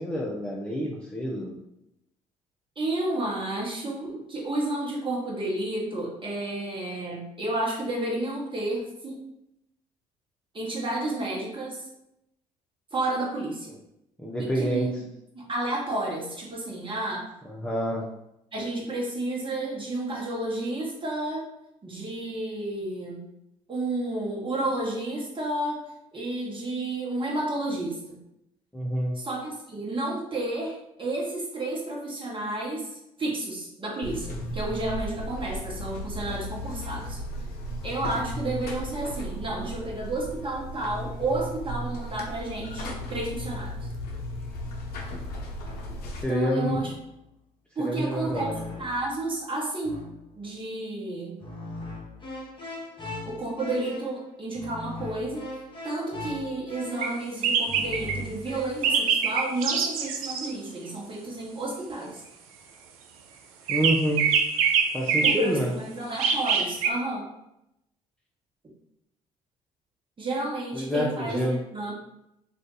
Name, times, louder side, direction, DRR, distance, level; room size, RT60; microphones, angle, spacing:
voice 1, 0.0-1.6 14.2-14.9 17.5-18.1 28.7-29.2 46.2-46.8 47.8-48.5 63.7-64.3 64.9-65.7 70.7-71.6, equal, 5° left, -4 dB, 0.6 m, -27 dB
voice 2, 2.8-9.2 10.5-11.9 12.9-13.8 14.4-15.0 15.3-17.3 18.5-21.5 21.8-23.2 23.7-25.8 26.1-28.2 29.1-32.9 33.2-37.2 37.8-43.9 46.3-46.9 47.7-50.0 50.3-51.4 53.2-55.5 55.8-62.2 65.2-67.3 70.2-71.9, right 2 dB, 30° right, -3 dB, 1.2 m, -31 dB
Buzz, 34.0-46.2, equal, 60° left, 0.7 m, -35 dB
sound 1, 45.6-46.1 46.7-47.2 48.2-49.2 49.8-50.4 51.4-59.0, left 2 dB, 25° left, 1.0 m, -40 dB
sound 2, 57.0-57.1 57.4-58.2 58.8-60.5 63.7-65.5 66.2-66.9, right 6 dB, 80° right, 0.4 m, -24 dB
2.6 x 2.5 x 3.8 m, 0.84 s
hypercardioid pair, 55°, 18 cm